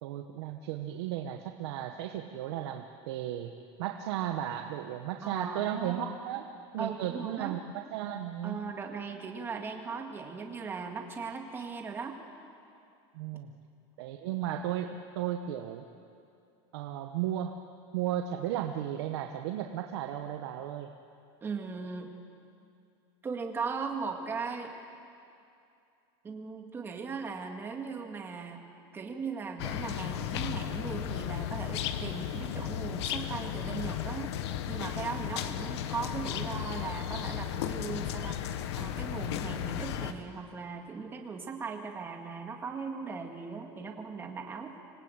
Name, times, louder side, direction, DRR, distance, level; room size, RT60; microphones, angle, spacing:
voice 1, 0.0-3.5 3.8-6.4 6.7-8.6 13.1-13.5 14.0-15.8 16.7-17.6 17.9-20.9, right 11 dB, 75° right, 4 dB, 1.3 m, -35 dB
voice 2, 5.2-6.2 6.8-7.6 8.4-12.2 21.4-22.1 23.2-24.7 26.2-28.6 28.9-34.4 34.7-44.8, right 5 dB, 15° right, 2 dB, 2.0 m, -38 dB
sound 1, 29.6-40.1, left 10 dB, 80° left, 1.4 m, -35 dB
26.0 x 18.5 x 9.0 m, 2.5 s
supercardioid pair, 165°, 14 cm